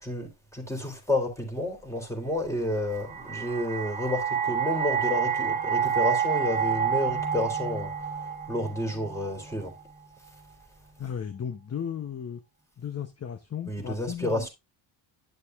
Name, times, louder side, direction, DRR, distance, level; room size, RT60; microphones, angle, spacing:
voice 1, 0.0-7.9 8.5-9.7 13.7-14.5, left 1 dB, 5° left, 3.7 m, -30 dB
sound 1, 2.7-9.8, right 7 dB, 15° right, 1.9 m, -29 dB
voice 2, 11.0-12.4 12.8-14.5, left 8 dB, 30° left, 0.8 m, -35 dB
11.0 x 6.6 x 2.4 m
supercardioid pair, 75°, 49 cm